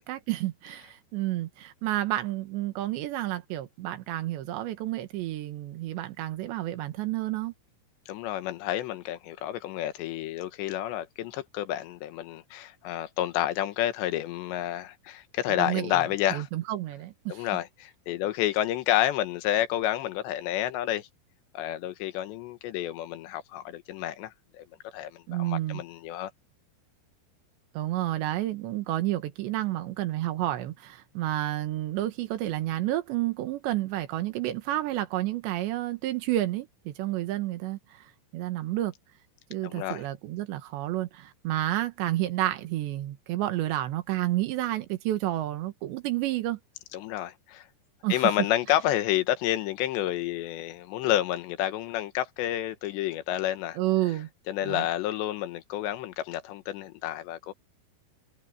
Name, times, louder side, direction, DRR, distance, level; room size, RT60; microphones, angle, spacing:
voice 1, 0.0-7.5 15.6-16.0 16.3-17.5 25.3-25.8 27.8-38.1 38.3-38.9 39.5-46.6 48.0-48.3 53.8-54.3 54.6-54.9, right 15 dB, 85° right, 3.7 m, -30 dB
voice 2, 8.1-16.5 17.3-21.1 21.6-24.7 24.9-26.3 39.6-40.0 46.9-47.7 48.1-53.8 54.5-57.5, left 13 dB, 85° left, 3.4 m, -29 dB
omnidirectional pair, 5.0 m